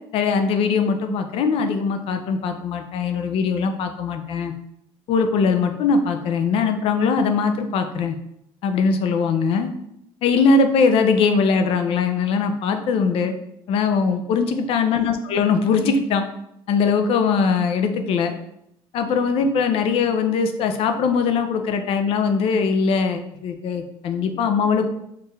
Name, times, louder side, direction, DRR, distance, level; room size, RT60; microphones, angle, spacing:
voice 1, 0.1-4.5 5.1-8.2 8.6-9.7 10.2-13.3 13.7-16.2 16.7-18.3 18.9-24.9, left 5 dB, 60° left, 7 dB, 0.5 m, -21 dB
4.5 x 2.5 x 3.2 m, 0.78 s
cardioid pair, 115°, 11 cm